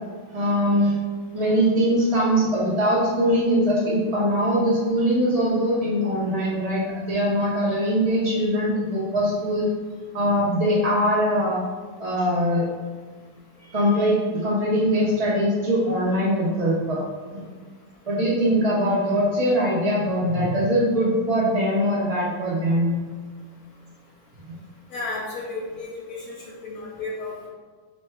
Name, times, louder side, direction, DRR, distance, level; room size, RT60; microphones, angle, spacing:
voice 1, 0.3-1.0 1.3-9.7 10.1-11.6 12.0-12.7 13.7-17.0 17.3-17.4 18.1-23.0, equal, 50° right, -8 dB, 0.4 m, -22 dB
voice 2, 24.9-26.2 26.6-27.5, left 3 dB, 60° left, -5 dB, 1.4 m, -32 dB
4.2 x 2.2 x 4.3 m, 1.5 s
omnidirectional pair, 1.9 m